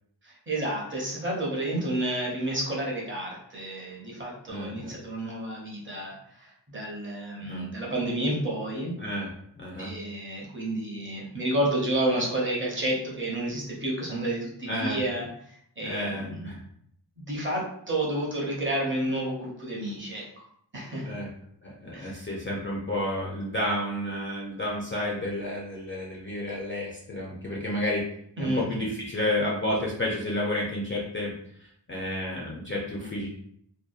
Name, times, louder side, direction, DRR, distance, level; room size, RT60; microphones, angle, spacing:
voice 1, 0.2-9.0 9.8-15.3 15.8-16.5 17.2-20.5 20.7-21.1 21.9-22.3 28.4-28.8 33.0-33.1, right 1 dB, 30° right, -3 dB, 0.6 m, -30 dB
voice 2, 4.5-4.9 7.4-7.7 9.0-9.3 9.6-9.9 14.7-15.0 15.8-16.6 21.0-21.3 21.6-28.0 28.4-31.3 31.9-33.3, left 1 dB, 30° left, -4 dB, 0.4 m, -31 dB
2.7 x 2.0 x 2.3 m, 0.68 s
wide cardioid pair, 160°, 44 cm